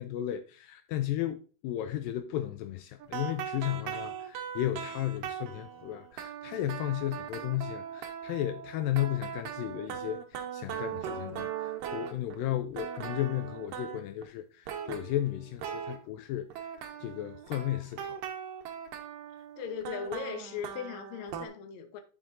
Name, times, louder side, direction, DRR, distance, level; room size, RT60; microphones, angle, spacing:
voice 1, 0.0-18.2, left 13 dB, 80° left, 2.1 m, -34 dB
sound 1, 3.0-12.5 12.7-14.2 14.7-16.0 16.5-21.5, right 9 dB, 75° right, 2.5 m, -39 dB
voice 2, 19.6-22.0, left 7 dB, 65° left, 1.9 m, -38 dB
13.0 x 5.3 x 2.6 m
omnidirectional pair, 4.1 m